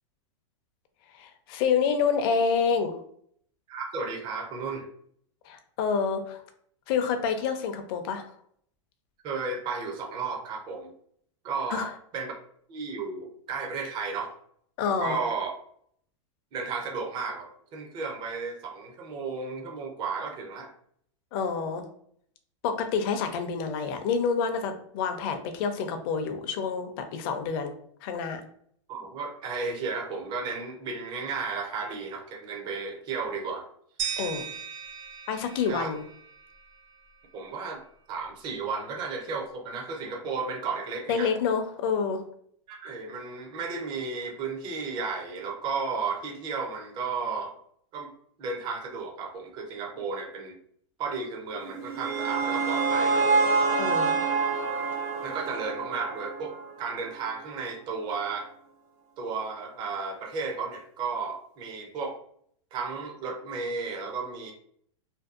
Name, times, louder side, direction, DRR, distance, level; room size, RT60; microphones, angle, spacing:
voice 1, 1.1-3.0 5.5-6.4 6.9-8.2 11.7-11.9 14.8-15.2 21.3-21.8 22.6-27.7 28.0-28.4 34.2-34.4 35.3-36.0 41.1-42.2 53.8-54.1, left 6 dB, 45° left, 6 dB, 0.4 m, -28 dB
voice 2, 3.7-4.9 9.2-10.9 11.4-12.3 12.7-14.3 14.8-15.5 16.5-20.7 28.9-33.6 35.7-35.9 37.3-37.8 38.1-41.3 42.7-47.5 47.9-48.1 48.4-50.6 51.0-53.3 55.2-58.5 59.2-62.2 62.7-64.5, right 4 dB, 30° right, 2 dB, 0.5 m, -33 dB
sound 1, 34.0-36.9, right 7 dB, 85° right, 1.2 m, -37 dB
sound 2, 51.6-56.8, right 4 dB, 60° right, 0.9 m, -26 dB
2.6 x 2.2 x 2.4 m, 0.64 s
supercardioid pair, 140°, 17 cm